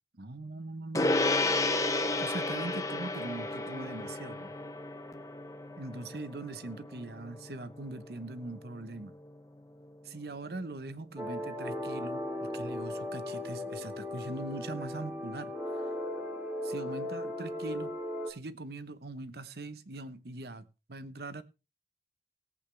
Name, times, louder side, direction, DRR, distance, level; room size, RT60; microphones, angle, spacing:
voice 1, 0.1-1.3 2.2-4.5 5.8-9.2 10.0-15.8 16.6-17.9 18.3-20.6 20.9-21.4, right 2 dB, 65° right, 0.9 m, -41 dB
Gong, 0.9-10.7, left 2 dB, 20° left, 0.8 m, -33 dB
sound 1, 11.2-18.3, left 1 dB, 5° right, 2.0 m, -37 dB
18.5 x 8.1 x 3.3 m
head